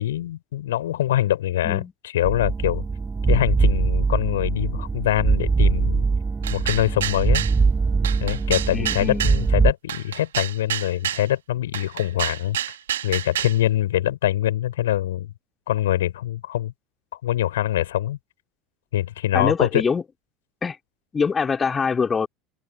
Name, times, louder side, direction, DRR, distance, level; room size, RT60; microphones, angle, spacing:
voice 1, 0.0-2.8 3.3-6.0 6.5-7.4 8.2-12.8 13.0-15.3 15.7-16.7 17.2-18.2 18.9-19.8, left 13 dB, 70° left, 5.7 m, -24 dB
sound 1, 2.2-9.7, right 4 dB, 20° right, 1.4 m, -22 dB
sound 2, 6.4-7.6 8.0-9.4 9.9-11.3 11.7-13.6, right 11 dB, 70° right, 3.3 m, -28 dB
voice 2, 8.7-9.2 19.3-20.0 20.6-20.8 21.1-22.3, left 5 dB, 25° left, 3.0 m, -24 dB
open air
figure-of-eight pair, 70°, 0 cm